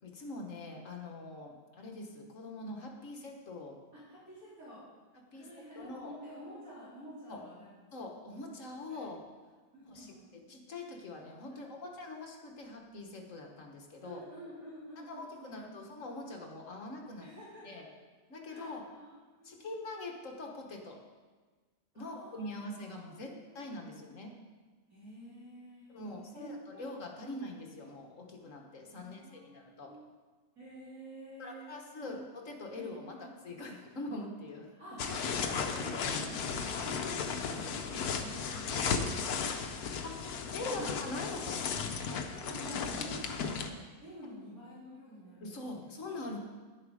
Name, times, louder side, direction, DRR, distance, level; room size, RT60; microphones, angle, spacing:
voice 1, 0.0-3.8 5.3-6.1 7.3-7.4 7.9-9.2 9.9-14.2 15.0-17.3 17.6-17.9 18.3-18.8 19.4-21.0 21.9-24.3 25.9-29.9 31.4-34.7 38.8-39.2 39.9-41.8 45.4-46.4, left 2 dB, 55° left, 2 dB, 1.7 m, -43 dB
voice 2, 3.9-4.8 5.3-7.7 8.9-9.1 9.7-10.3 11.5-12.0 14.0-15.8 17.2-17.8 18.4-19.1 19.4-19.6 21.9-23.6 24.9-26.8 27.2-27.3 28.8-29.6 29.8-30.2 30.6-31.7 32.0-32.2 32.7-33.6 34.8-39.4 40.7-41.1 42.3-45.9, equal, 60° right, -10 dB, 4.4 m, -49 dB
sound 1, 35.0-43.7, left 5 dB, 75° left, 1.3 m, -35 dB
10.5 x 9.9 x 4.9 m, 1.4 s
omnidirectional pair, 1.7 m